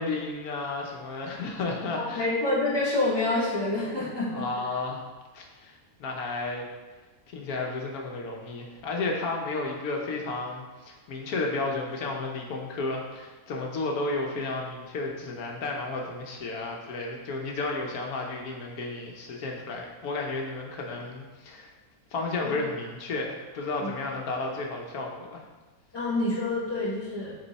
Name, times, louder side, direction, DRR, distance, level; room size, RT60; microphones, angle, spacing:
voice 1, 0.0-2.3 4.3-5.0 5.3-6.7 7.3-21.7 22.1-25.4, left 3 dB, 85° left, 0 dB, 1.4 m, -32 dB
voice 2, 1.9-4.7 20.9-21.0 22.4-22.7 23.8-23.9 25.9-27.4, left 2 dB, 15° left, -7 dB, 1.7 m, -28 dB
8.5 x 3.8 x 4.1 m, 1.3 s
omnidirectional pair, 1.5 m